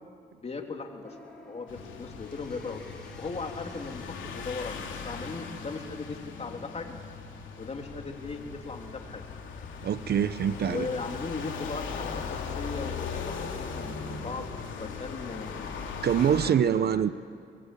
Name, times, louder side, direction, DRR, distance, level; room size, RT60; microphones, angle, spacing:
voice 1, 0.4-1.2 1.5-2.8 3.2-7.0 7.6-9.2 10.7-15.6 16.4-17.1, left 4 dB, 30° left, 3 dB, 3.3 m, -38 dB
sound 1, 1.0-5.5, left 1 dB, 5° left, 6.6 m, -52 dB
sound 2, 1.7-16.5, left 5 dB, 70° left, 3.4 m, -39 dB
voice 2, 9.8-10.9 16.0-17.1, right 8 dB, 55° right, 14 dB, 0.8 m, -24 dB
24.5 x 21.5 x 8.5 m, 2.2 s
cardioid pair, 90°, 20 cm